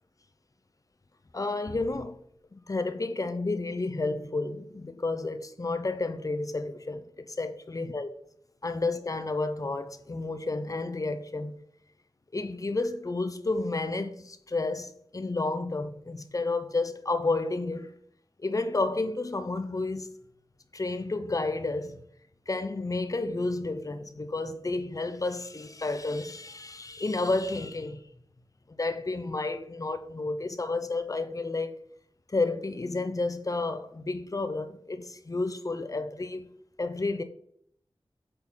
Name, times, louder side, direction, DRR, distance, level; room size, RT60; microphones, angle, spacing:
voice 1, 1.3-2.2 2.5-8.1 8.6-11.6 12.3-17.9 18.4-20.2 20.7-22.0 22.5-28.0 28.8-31.8 32.3-36.5 36.8-37.2, left 3 dB, 40° left, 0.6 m, -31 dB
7.7 x 3.9 x 4.5 m
wide cardioid pair, 85°, 9 cm